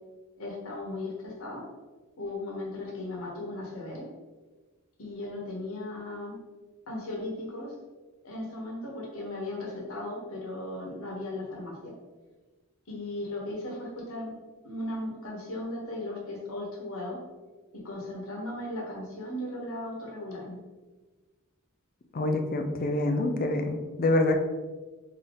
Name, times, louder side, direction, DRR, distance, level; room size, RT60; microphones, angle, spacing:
voice 1, 0.4-1.6 2.2-4.1 5.0-6.4 6.9-7.7 8.2-11.9 12.9-14.3 14.6-17.2 17.8-20.6, left 1 dB, 70° left, -1 dB, 1.1 m, -36 dB
voice 2, 22.1-24.4, left 2 dB, 40° left, 5 dB, 0.4 m, -26 dB
3.8 x 2.8 x 3.4 m, 1.3 s
head